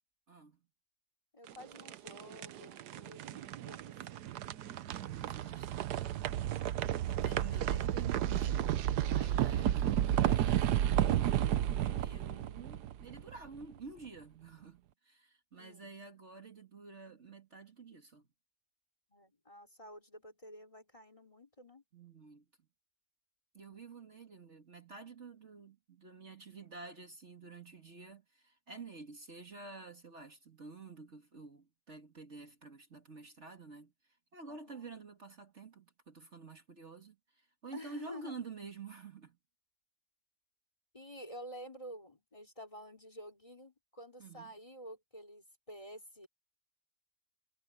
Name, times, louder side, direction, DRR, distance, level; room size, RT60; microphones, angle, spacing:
voice 1, 0.3-0.6 4.8-6.1 7.0-11.4 12.0-18.3 21.9-22.7 23.5-39.4 44.2-44.5, right 4 dB, 45° right, 2.2 m, -50 dB
voice 2, 1.3-4.3 15.6-15.9 19.1-21.8 34.5-34.9 37.7-38.4 40.9-46.3, equal, 20° left, 3.1 m, -50 dB
sound 1, 1.5-13.6, right 11 dB, 85° right, 1.3 m, -32 dB
omnidirectional pair, 1.7 m